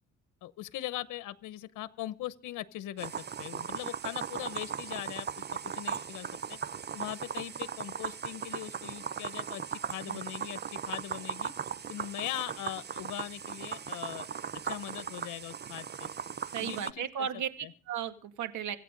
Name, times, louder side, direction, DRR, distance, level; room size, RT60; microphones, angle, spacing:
voice 1, 0.4-6.6 6.9-11.5 11.9-14.3 14.6-16.1 16.6-17.3 17.6-17.7, left 14 dB, 85° left, 14 dB, 0.9 m, -40 dB
sound 1, 3.0-16.9, right 7 dB, 35° right, 0.7 m, -38 dB
voice 2, 16.5-18.8, right 8 dB, 75° right, 7 dB, 2.3 m, -35 dB
26.0 x 8.9 x 3.9 m, 0.40 s
cardioid pair, 90°, 30 cm